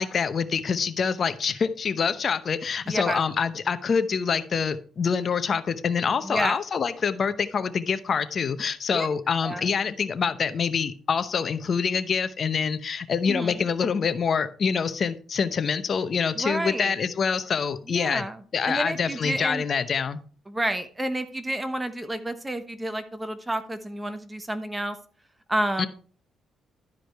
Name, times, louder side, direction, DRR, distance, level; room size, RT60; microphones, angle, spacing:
voice 1, 0.0-18.3 18.5-20.2 25.8-25.9, left 6 dB, 50° left, 12 dB, 0.8 m, -26 dB
voice 2, 2.9-3.2 6.2-6.6 8.9-9.1 9.4-9.7 13.3-13.6 16.3-16.9 17.9-18.4 18.7-19.6 20.5-25.0 25.5-25.9, right 1 dB, 15° right, 10 dB, 1.1 m, -30 dB
12.0 x 5.0 x 4.6 m, 0.41 s
cardioid pair, 90°, 0 cm